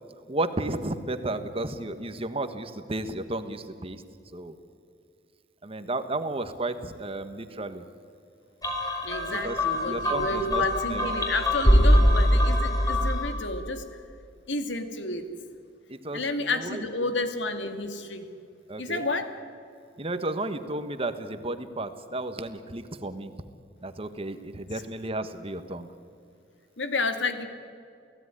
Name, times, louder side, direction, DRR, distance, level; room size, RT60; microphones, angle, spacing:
voice 1, 0.3-4.0 4.3-4.5 5.6-7.8 9.3-9.6 9.9-11.1 15.9-17.1 18.7-19.0 20.0-23.3 23.8-25.9, right 2 dB, 30° right, 10 dB, 1.4 m, -33 dB
sound 1, 8.6-13.4, equal, 20° left, 5.0 m, -23 dB
voice 2, 9.0-13.8 14.5-15.3 16.1-18.2 18.8-19.3 26.8-27.5, left 2 dB, 85° left, 8 dB, 2.4 m, -31 dB
29.5 x 16.5 x 9.9 m, 2.3 s
head